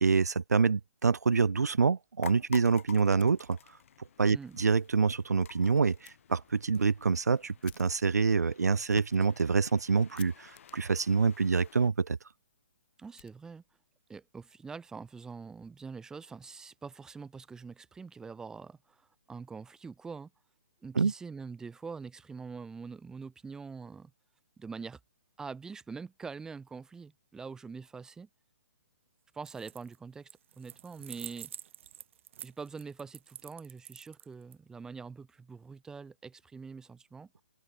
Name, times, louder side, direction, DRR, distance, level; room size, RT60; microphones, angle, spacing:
voice 1, 0.0-3.6 4.2-12.2 21.0-21.1, right 5 dB, 85° right, 0.4 m, -26 dB
sound 1, 2.2-11.9, left 9 dB, 55° left, 2.9 m, -51 dB
Fire, 3.2-4.0 4.3-4.4 4.8-4.9 6.0-6.2 6.7-13.9, left 16 dB, 35° left, 3.3 m, -60 dB
voice 2, 4.3-4.6 13.0-13.6 14.1-20.3 20.8-24.1 24.6-25.0 25.4-28.3 29.3-30.3 30.6-31.5 32.4-37.3, right 5 dB, 5° right, 0.8 m, -44 dB
sound 2, 29.4-30.0 30.3-34.5, right 10 dB, 50° right, 3.3 m, -47 dB
open air
figure-of-eight pair, 135°, 9 cm